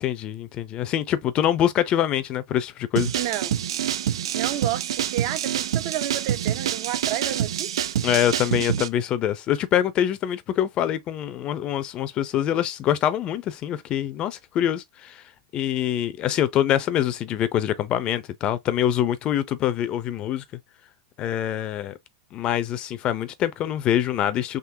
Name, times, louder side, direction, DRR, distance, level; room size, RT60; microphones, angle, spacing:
voice 1, 0.0-3.1 8.0-15.2 15.5-20.4 21.2-22.0 22.3-24.6, left 11 dB, 35° left, 0.5 m, -24 dB
sound 1, 3.0-8.9, right 10 dB, 85° right, 0.4 m, -26 dB
voice 2, 3.1-3.5 4.3-7.8, right 13 dB, 55° right, 0.7 m, -31 dB
3.7 x 2.7 x 2.7 m
hypercardioid pair, 120°, 3 cm